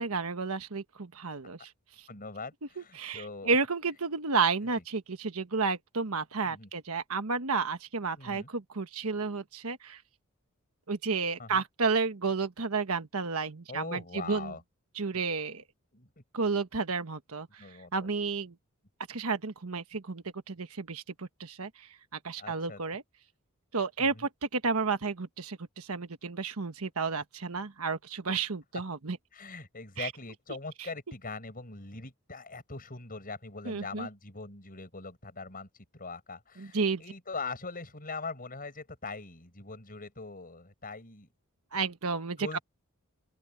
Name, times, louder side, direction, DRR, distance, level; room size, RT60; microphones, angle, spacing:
voice 1, 0.0-1.7 3.0-10.0 10.9-14.5 15.0-15.6 16.3-17.6 17.9-18.5 19.1-21.9 22.2-23.0 23.7-29.2 30.0-30.1 33.7-34.1 36.6-37.0 41.7-42.6, right 4 dB, 85° right, 1.3 m, -31 dB
voice 2, 2.1-3.6 6.4-6.7 8.1-8.5 11.4-11.6 13.7-14.6 15.1-15.3 15.9-16.1 17.6-18.1 22.4-22.8 24.0-24.2 29.3-41.3 42.4-42.6, left 3 dB, 40° left, 6.7 m, -42 dB
open air
head